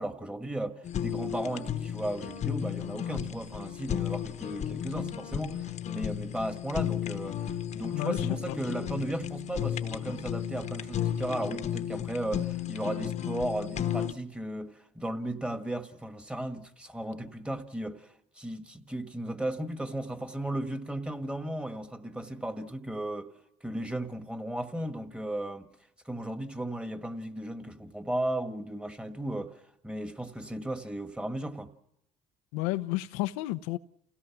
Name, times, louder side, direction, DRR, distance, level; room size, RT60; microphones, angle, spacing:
voice 1, 0.0-23.3 23.6-25.7 26.0-31.7, right 1 dB, 5° right, 1.6 m, -35 dB
Fire, 0.8-14.1, left 10 dB, 50° left, 1.1 m, -33 dB
voice 2, 7.9-8.5 32.5-33.8, left 17 dB, 85° left, 0.7 m, -31 dB
29.0 x 17.5 x 6.0 m
supercardioid pair, 85°, 15 cm